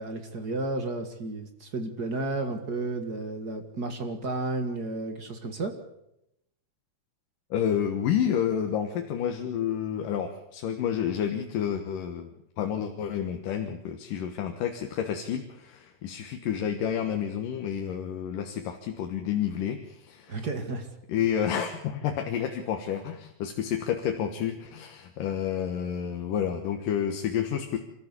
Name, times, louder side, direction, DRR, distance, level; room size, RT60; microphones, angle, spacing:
voice 1, 0.0-5.8 20.3-20.9, right 2 dB, 35° right, 6 dB, 1.9 m, -32 dB
voice 2, 7.5-20.4 21.1-27.8, left 9 dB, 80° left, 5 dB, 3.0 m, -30 dB
27.5 x 14.0 x 8.3 m, 0.82 s
omnidirectional pair, 3.8 m